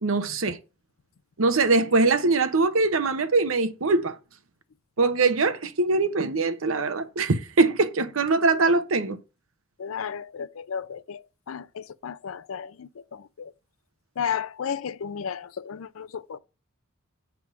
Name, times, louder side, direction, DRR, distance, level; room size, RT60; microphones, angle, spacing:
voice 1, 0.0-0.6 1.4-4.2 5.0-9.2, right 3 dB, 85° right, 0.8 m, -22 dB
voice 2, 9.8-13.5 14.2-16.4, left 7 dB, 85° left, 0.5 m, -34 dB
7.4 x 3.5 x 6.0 m
head